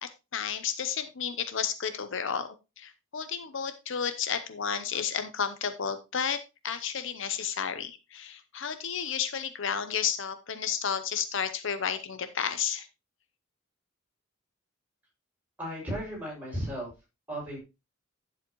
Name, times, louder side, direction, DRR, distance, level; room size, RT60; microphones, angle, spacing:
voice 1, 0.0-12.9, left 7 dB, 65° left, 11 dB, 0.8 m, -32 dB
voice 2, 15.6-16.9 17.3-17.6, equal, 10° right, -4 dB, 6.3 m, -35 dB
10.5 x 7.2 x 3.1 m, 0.26 s
head